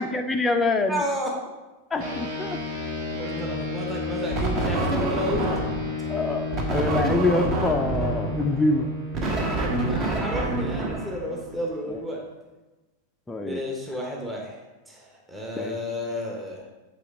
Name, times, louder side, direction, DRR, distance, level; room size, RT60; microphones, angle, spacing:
voice 1, 0.0-1.0 1.9-2.6 3.4-3.5 6.1-8.9 13.3-13.6 15.6-15.8, left 2 dB, 10° left, 4 dB, 0.5 m, -25 dB
voice 2, 0.9-1.3 3.2-5.6 9.9-12.2 13.4-14.6 14.9-16.7, equal, 10° right, -1 dB, 1.1 m, -32 dB
sound 1, 2.0-11.7, left 3 dB, 45° right, 1.4 m, -33 dB
sound 2, 4.3-5.9 6.5-11.7, right 2 dB, 30° right, 1.2 m, -27 dB
8.3 x 4.1 x 3.7 m, 1.1 s
figure-of-eight pair, 90°, 0 cm